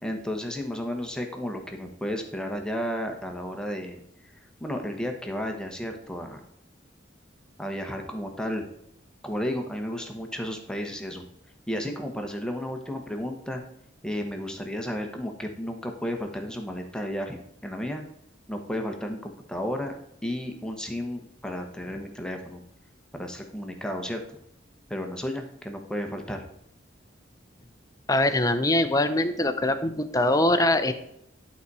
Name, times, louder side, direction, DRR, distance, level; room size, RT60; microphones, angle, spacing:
voice 1, 0.0-4.0 4.4-6.4 7.6-8.6 9.2-11.2 11.7-13.6 14.0-18.0 18.5-19.9 20.2-22.6 23.1-24.2 24.9-26.4, equal, 5° left, 4 dB, 1.1 m, -33 dB
voice 2, 28.1-30.9, left 1 dB, 20° left, 9 dB, 0.7 m, -23 dB
11.5 x 4.1 x 4.8 m, 0.74 s
head